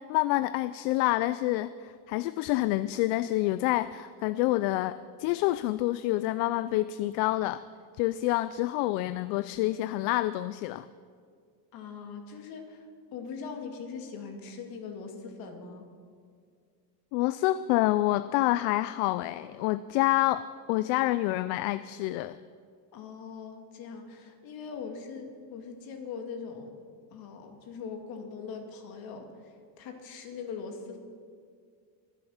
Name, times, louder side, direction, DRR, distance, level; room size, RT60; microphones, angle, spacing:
voice 1, 0.0-7.6 8.0-10.9 17.1-22.4, left 16 dB, 70° left, 15 dB, 0.5 m, -27 dB
voice 2, 11.7-12.8 13.1-15.8 22.9-26.7 27.1-31.0, left 5 dB, 50° left, 4 dB, 2.4 m, -41 dB
23.0 x 8.1 x 5.7 m, 2.1 s
cardioid pair, 145°, 45 cm